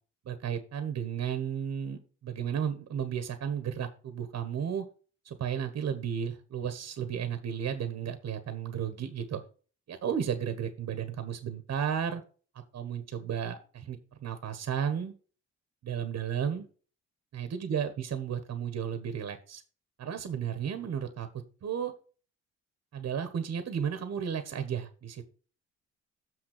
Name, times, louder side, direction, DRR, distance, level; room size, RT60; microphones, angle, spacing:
voice 1, 0.2-4.8 5.2-9.4 9.9-12.2 12.7-15.1 15.8-16.7 17.3-19.6 20.0-21.3 21.6-21.9 22.9-25.2, right 8 dB, 55° right, 9 dB, 1.5 m, -33 dB
7.0 x 6.4 x 6.8 m, 0.38 s
cardioid pair, 90°, 30 cm